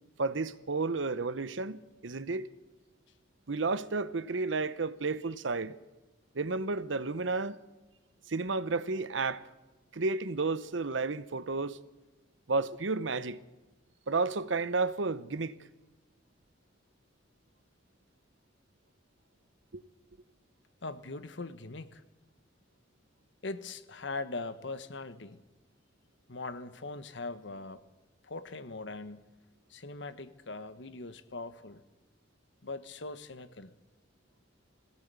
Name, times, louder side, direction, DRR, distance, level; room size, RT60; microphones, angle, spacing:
voice 1, 0.2-2.5 3.5-5.8 6.3-7.6 8.3-9.5 9.9-11.8 12.5-13.4 14.1-15.5 19.7-19.8, right 3 dB, 80° right, 0.9 m, -32 dB
voice 2, 20.8-22.0 23.4-25.4 26.3-27.8 28.2-29.3 29.7-31.8 32.6-33.7, left 3 dB, 70° left, 1.2 m, -41 dB
20.5 x 16.5 x 8.3 m
head